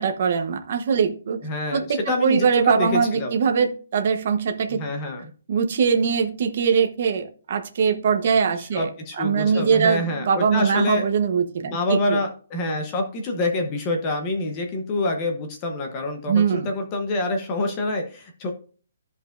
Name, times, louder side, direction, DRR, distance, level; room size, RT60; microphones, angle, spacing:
voice 1, 0.0-1.4 1.7-4.8 5.5-8.9 9.2-12.0 16.3-16.7, right 6 dB, 40° right, 6 dB, 1.0 m, -22 dB
voice 2, 1.4-3.4 4.7-5.3 8.6-11.1 11.7-18.5, left 2 dB, 20° left, 4 dB, 0.9 m, -26 dB
13.5 x 5.2 x 2.5 m, 0.39 s
hypercardioid pair, 175°, 0 cm